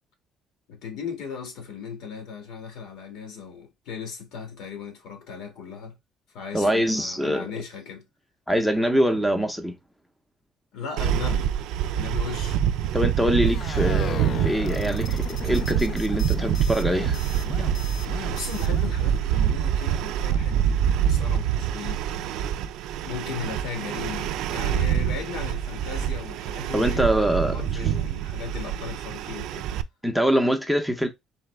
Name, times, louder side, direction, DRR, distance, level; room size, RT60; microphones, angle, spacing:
voice 1, 0.7-6.0 6.3-8.0 10.7-11.5 11.9-12.6 18.3-22.4 23.0-29.7, left 6 dB, 75° left, 1.7 m, -37 dB
voice 2, 6.5-7.5 8.5-9.7 12.9-17.2 26.7-27.5 30.0-31.1, equal, ahead, 0.6 m, -24 dB
sound 1, 11.0-29.8, right 9 dB, 80° right, 0.3 m, -26 dB
sound 2, 13.4-18.9, left 7 dB, 50° left, 0.5 m, -36 dB
4.0 x 3.3 x 3.3 m
cardioid pair, 160°, 0 cm